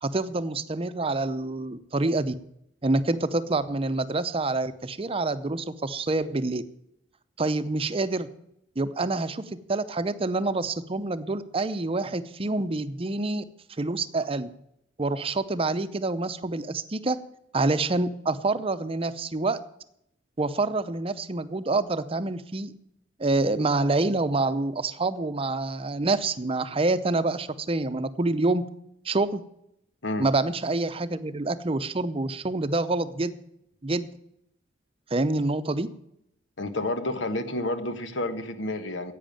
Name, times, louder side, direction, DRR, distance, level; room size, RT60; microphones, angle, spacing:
voice 1, 0.0-2.3 2.8-6.6 7.4-8.3 8.8-13.4 13.8-14.5 15.0-17.2 17.5-19.6 20.4-22.7 23.2-28.6 29.0-29.4 30.2-33.3 33.8-34.1 35.1-35.9, right 2 dB, 30° right, 12 dB, 0.7 m, -27 dB
voice 2, 36.6-39.1, left 2 dB, 85° left, 9 dB, 1.3 m, -30 dB
10.5 x 8.5 x 8.8 m, 0.77 s
head